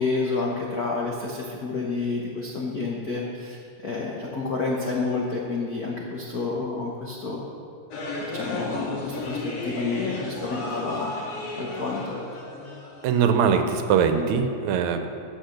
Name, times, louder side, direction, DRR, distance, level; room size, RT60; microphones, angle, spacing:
voice 1, 0.0-7.4 8.3-11.1 11.6-12.2, left 3 dB, 65° left, -3 dB, 0.9 m, -29 dB
sound 1, 7.9-13.3, left 2 dB, 90° left, 3.3 m, -33 dB
voice 2, 13.0-15.1, right 6 dB, 80° right, 7 dB, 2.0 m, -21 dB
14.5 x 6.2 x 6.5 m, 2.5 s
omnidirectional pair, 3.4 m